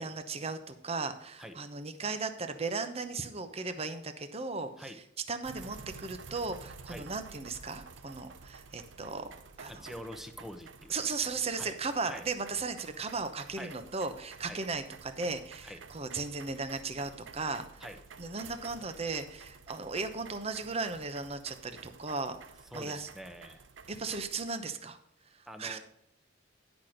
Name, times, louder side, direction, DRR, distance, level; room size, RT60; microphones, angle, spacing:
voice 1, 0.0-4.7 5.3-9.3 9.6-9.9 10.9-17.8 18.2-22.4 22.7-23.1 23.9-25.0 25.6-25.8, right 4 dB, 30° right, 9 dB, 0.8 m, -36 dB
sound 1, 5.4-24.5, right 5 dB, 70° right, 0.7 m, -51 dB
voice 2, 9.7-11.0 11.6-11.7 12.1-12.2 13.6-13.7 14.5-14.6 15.6-15.8 17.8-18.0 22.7-23.6 25.5-25.8, equal, ahead, 7 dB, 0.9 m, -45 dB
10.5 x 6.1 x 5.0 m, 0.75 s
head